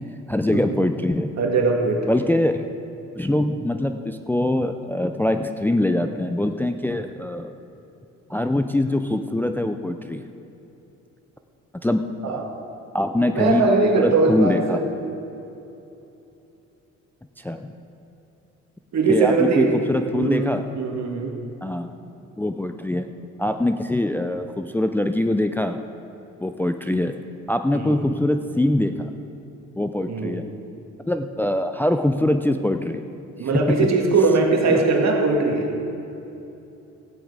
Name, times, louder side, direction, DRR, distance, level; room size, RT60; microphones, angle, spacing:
voice 1, 0.3-1.3 2.1-2.7 3.2-7.5 8.3-10.2 11.8-12.4 12.9-13.7 13.9-14.8 17.4-17.7 19.1-20.6 21.6-21.9 22.4-23.1 23.4-25.8 26.4-27.2 27.5-29.1 29.8-30.4 31.1-33.0 34.7-34.8, left 1 dB, 5° left, 7 dB, 0.4 m, -23 dB
voice 2, 1.4-2.0 12.2-12.5 13.3-14.8 18.9-19.7 20.1-21.3 27.7-28.0 30.1-30.4 33.4-35.7, right 3 dB, 60° right, 1 dB, 2.1 m, -20 dB
15.0 x 9.2 x 4.9 m, 2.9 s
cardioid pair, 90°, 30 cm